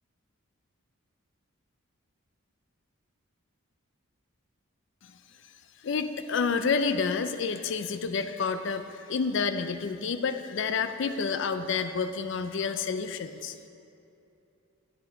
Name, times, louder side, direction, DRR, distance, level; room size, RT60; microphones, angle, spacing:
voice 1, 5.8-13.5, left 5 dB, 55° left, 9 dB, 0.4 m, -29 dB
10.5 x 7.7 x 3.8 m, 2.7 s
head